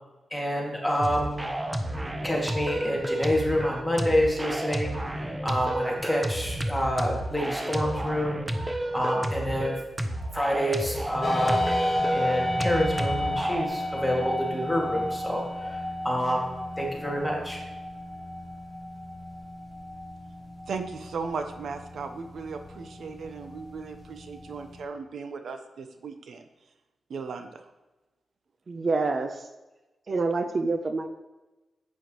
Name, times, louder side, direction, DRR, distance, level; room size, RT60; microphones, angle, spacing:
voice 1, 0.3-1.5 2.1-9.8 10.3-11.6 12.1-15.8 16.0-16.5 16.8-17.6, equal, 5° left, -2 dB, 2.2 m, -28 dB
sound 1, 1.0-13.6, right 1 dB, 15° right, 0.8 m, -31 dB
sound 2, 11.2-24.8, left 1 dB, 30° left, 1.7 m, -33 dB
voice 2, 20.7-26.4 27.1-27.6, right 5 dB, 75° right, 7 dB, 0.8 m, -37 dB
voice 3, 28.7-29.5 30.1-31.1, right 3 dB, 45° right, 7 dB, 0.6 m, -27 dB
11.5 x 8.5 x 3.1 m, 1.1 s
wide cardioid pair, 100°, 0 cm